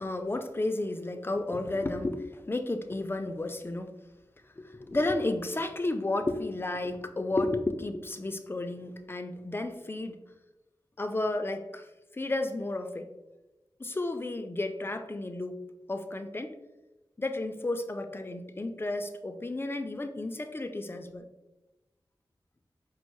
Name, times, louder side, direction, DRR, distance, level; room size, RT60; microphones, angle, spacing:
voice 1, 0.0-3.9 4.6-10.2 11.0-11.8 12.1-13.1 13.8-15.6 15.9-16.5 17.2-21.3, left 2 dB, 25° left, 7 dB, 0.4 m, -32 dB
5.2 x 2.0 x 3.0 m, 1.0 s
wide cardioid pair, 60°, 9 cm